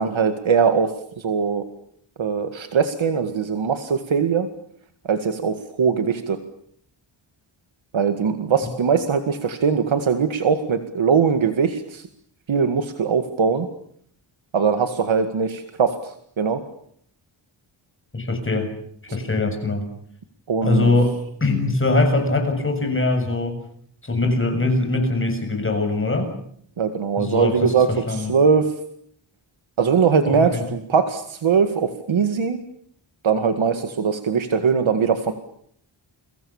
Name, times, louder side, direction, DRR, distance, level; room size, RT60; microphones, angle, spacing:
voice 1, 0.0-1.6 2.2-4.5 5.1-6.4 7.9-12.1 12.5-13.7 14.5-16.6 20.5-20.9 26.8-28.7 29.8-32.6 33.2-35.3, right 6 dB, 75° right, 7 dB, 2.1 m, -21 dB
voice 2, 18.1-18.7 19.1-19.9 20.6-21.1 21.4-23.5 24.0-26.3 27.2-28.3 30.3-30.7, left 2 dB, 25° left, 5 dB, 7.0 m, -22 dB
30.0 x 23.5 x 7.2 m, 0.67 s
wide cardioid pair, 175°, 47 cm